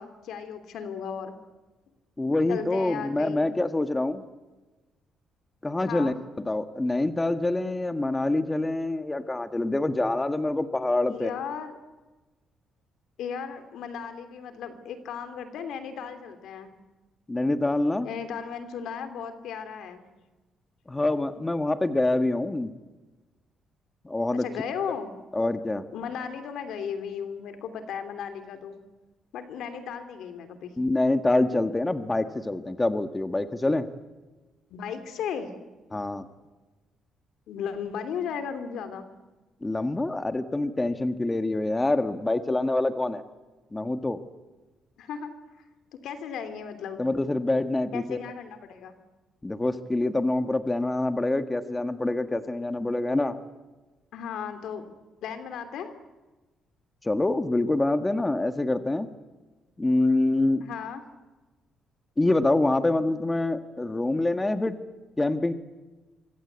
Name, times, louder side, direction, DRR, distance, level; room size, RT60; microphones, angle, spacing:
voice 1, 0.0-1.4 2.5-3.5 5.8-6.2 11.1-11.8 13.2-16.7 18.0-20.1 24.3-25.2 25.9-28.8 29.3-30.7 34.7-35.6 37.5-39.1 45.0-45.6 45.9-47.0 47.9-48.9 54.1-54.8 55.2-55.9 60.6-61.0, left 7 dB, 80° left, 9 dB, 3.1 m, -35 dB
voice 2, 2.2-4.2 5.6-6.1 6.5-11.3 17.3-18.1 20.9-22.7 24.0-24.4 25.3-25.8 30.8-33.9 35.9-36.2 39.6-43.2 43.7-44.2 47.0-48.2 49.4-53.4 57.0-59.1 59.8-60.7 62.2-64.8 65.2-65.5, left 2 dB, 15° left, 9 dB, 1.7 m, -26 dB
26.0 x 24.5 x 8.3 m, 1.2 s
cardioid pair, 90°, 0 cm